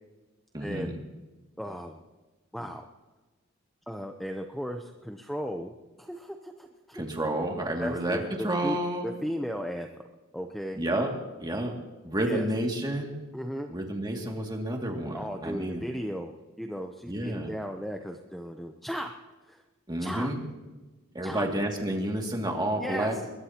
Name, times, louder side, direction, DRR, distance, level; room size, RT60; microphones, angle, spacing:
voice 1, 0.5-1.0 6.9-9.1 10.7-11.1 11.4-11.7 12.0-13.1 13.7-15.9 17.1-17.5 19.9-20.4 21.1-23.1, right 1 dB, 20° right, 1 dB, 2.3 m, -30 dB
voice 2, 1.6-2.0 2.5-2.8 3.9-7.1 7.8-8.8 9.0-9.9 10.3-10.8 12.3-12.4 13.3-13.7 15.1-16.3 16.6-19.1 19.5-19.6 20.0-20.3 21.2-21.5 22.8-23.2, equal, ahead, 4 dB, 0.7 m, -36 dB
22.0 x 21.5 x 2.9 m, 1.2 s
head